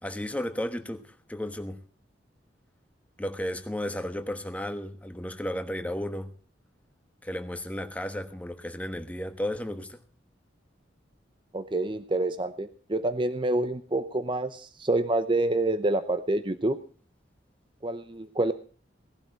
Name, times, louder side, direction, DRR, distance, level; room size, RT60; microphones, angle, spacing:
voice 1, 0.0-1.8 3.2-6.3 7.2-10.0, left 1 dB, 10° left, 7 dB, 1.2 m, -33 dB
voice 2, 11.5-16.8 17.8-18.5, right 2 dB, 25° right, 11 dB, 0.7 m, -27 dB
18.0 x 11.5 x 4.5 m, 0.41 s
head